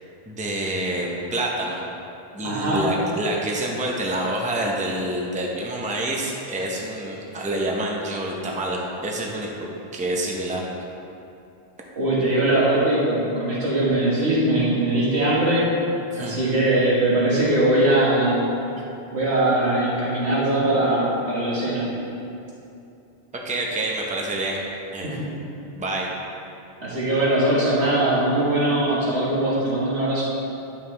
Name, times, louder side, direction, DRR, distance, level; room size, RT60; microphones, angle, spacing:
voice 1, 0.3-1.8 2.3-10.6 16.1-16.4 18.8-18.9 23.4-24.6 24.9-25.2 25.7-26.1, right 1 dB, 10° right, -2 dB, 0.6 m, -27 dB
voice 2, 2.4-2.8 12.0-15.6 16.2-18.5 19.1-21.9 25.0-25.3 26.8-30.2, right 1 dB, 85° right, -7 dB, 2.0 m, -21 dB
9.0 x 5.6 x 3.4 m, 2.7 s
omnidirectional pair, 1.1 m